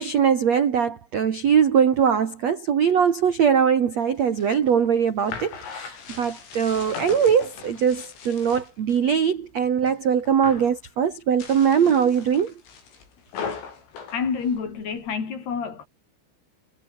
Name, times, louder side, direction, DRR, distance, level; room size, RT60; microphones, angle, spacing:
voice 1, 0.0-12.5, right 7 dB, 70° right, 1.6 m, -21 dB
sound 1, 4.2-9.1 9.4-10.0 10.3-10.8 11.3-15.2, left 6 dB, 70° left, 9.0 m, -39 dB
voice 2, 14.1-15.9, left 6 dB, 50° left, 7.1 m, -28 dB
omnidirectional pair, 6.0 m